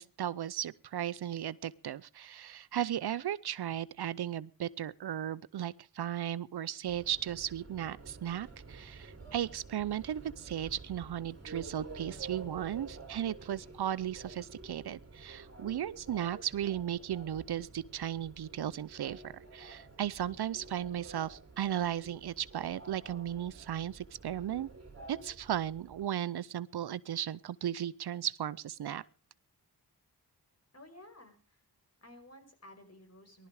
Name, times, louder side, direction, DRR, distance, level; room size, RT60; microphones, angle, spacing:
voice 1, 0.0-24.7 25.1-29.0, right 10 dB, 70° right, 0.7 m, -36 dB
Subway metro underground, 6.8-26.1, right 3 dB, 40° right, 3.5 m, -50 dB
voice 2, 30.7-31.6 32.0-33.5, left 1 dB, 40° left, 5.3 m, -54 dB
19.0 x 12.5 x 4.8 m
cardioid pair, 60°, 40 cm